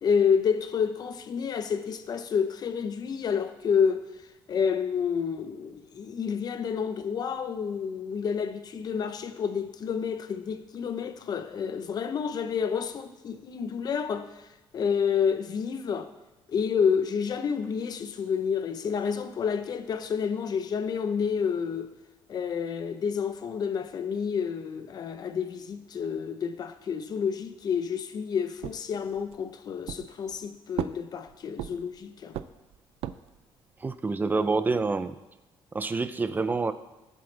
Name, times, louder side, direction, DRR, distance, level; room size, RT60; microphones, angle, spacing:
voice 1, 0.0-4.0 4.5-14.3 14.7-16.1 16.5-21.9 22.3-32.4, left 6 dB, 45° left, 0.8 m, -29 dB
sound 1, 28.6-29.5 29.9-30.4 30.8-32.0 32.3-33.4, right 11 dB, 75° right, 0.5 m, -36 dB
voice 2, 33.8-35.2 35.7-36.7, right 3 dB, 20° right, 0.5 m, -27 dB
18.0 x 7.7 x 3.4 m
cardioid pair, 140°, 10 cm